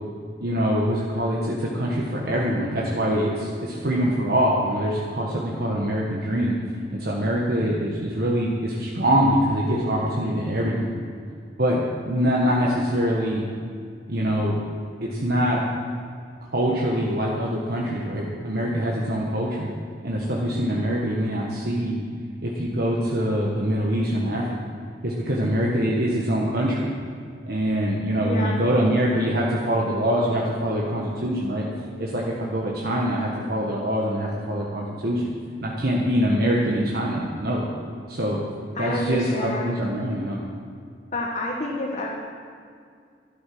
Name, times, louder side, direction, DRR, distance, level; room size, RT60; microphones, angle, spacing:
voice 1, 0.4-6.6 6.9-10.9 11.6-13.4 14.1-14.6 15.0-15.6 16.5-19.7 20.0-22.0 22.4-24.6 25.0-26.9 27.5-31.7 32.0-35.3 35.6-37.7 38.1-38.4 38.8-40.4, equal, 60° right, -3 dB, 1.5 m, -24 dB
voice 2, 28.2-28.5 38.7-39.6 41.1-42.1, left 1 dB, 40° left, -4 dB, 1.5 m, -28 dB
12.0 x 11.5 x 6.1 m, 2.2 s
head